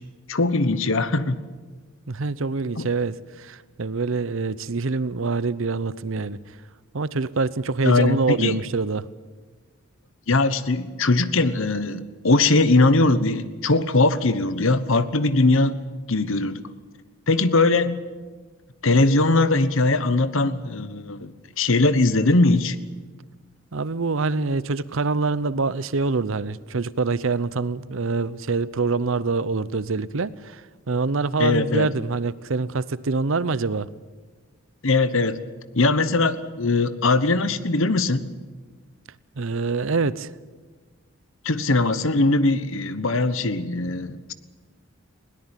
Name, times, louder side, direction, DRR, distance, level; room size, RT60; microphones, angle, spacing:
voice 1, 0.3-1.4 2.8-2.9 7.8-8.6 10.3-15.8 16.1-16.6 17.3-18.0 18.8-22.8 31.4-31.9 34.8-35.4 35.7-38.3 41.4-44.3, left 2 dB, 65° left, 1.1 m, -20 dB
voice 2, 2.1-6.4 6.9-9.1 23.7-30.6 30.9-33.9 39.4-40.3, right 4 dB, 65° right, 0.7 m, -25 dB
21.0 x 17.5 x 9.0 m
head